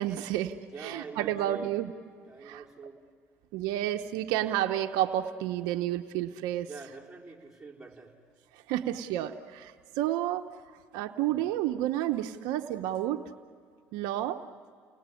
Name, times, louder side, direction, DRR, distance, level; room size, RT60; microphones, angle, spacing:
voice 1, 0.0-1.9 2.4-2.6 3.5-6.7 8.5-10.5 10.9-13.2 13.9-14.4, right 13 dB, 75° right, 7 dB, 0.9 m, -30 dB
voice 2, 0.7-1.7 2.3-3.0 6.6-8.1, right 4 dB, 10° right, -3 dB, 4.7 m, -45 dB
30.0 x 19.5 x 8.5 m, 2.1 s
supercardioid pair, 80°, 7 cm